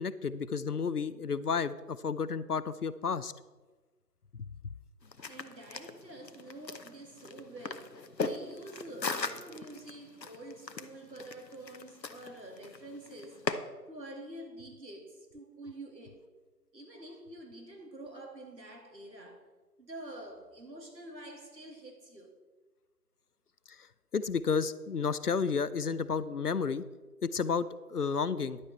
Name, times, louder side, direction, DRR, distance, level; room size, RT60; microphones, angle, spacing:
voice 1, 0.0-3.3 4.5-4.6 23.8-23.9 24.1-26.8 27.2-28.6, left 5 dB, 70° left, 0.6 m, -31 dB
sound 1, 5.0-13.5, left 4 dB, 85° left, 1.0 m, -39 dB
voice 2, 5.3-13.6 13.9-16.2 16.7-19.5 19.8-22.3, right 1 dB, 90° right, 2.7 m, -47 dB
11.0 x 8.6 x 4.2 m
figure-of-eight pair, 180°, 49 cm